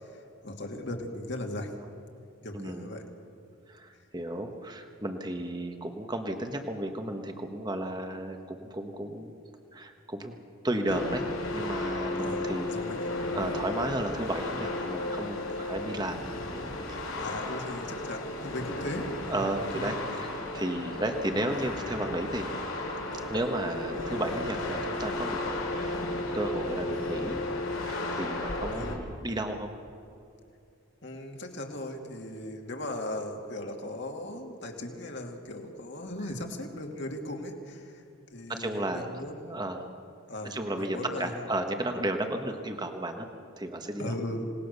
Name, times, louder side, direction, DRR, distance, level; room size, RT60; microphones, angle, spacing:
voice 1, 0.0-1.7 2.4-3.0 12.2-13.1 17.2-19.1 19.7-20.2 20.5-20.6 28.7-28.9 31.0-38.0 38.3-39.6 40.3-41.4 44.0-44.5, left 1 dB, 55° left, 2 dB, 2.6 m, -38 dB
voice 2, 2.5-2.9 3.7-9.3 9.7-11.3 11.5-12.9 13.3-16.2 16.9-17.0 19.2-20.3 20.5-22.5 23.3-25.4 25.7-26.0 26.3-27.4 27.9-29.7 38.5-39.1 39.5-39.9 40.4-43.3 43.6-44.2, right 1 dB, 20° right, 5 dB, 1.3 m, -33 dB
sound 1, 10.9-28.9, left 2 dB, 80° left, 4.2 m, -34 dB
27.0 x 19.0 x 6.8 m, 2.5 s
head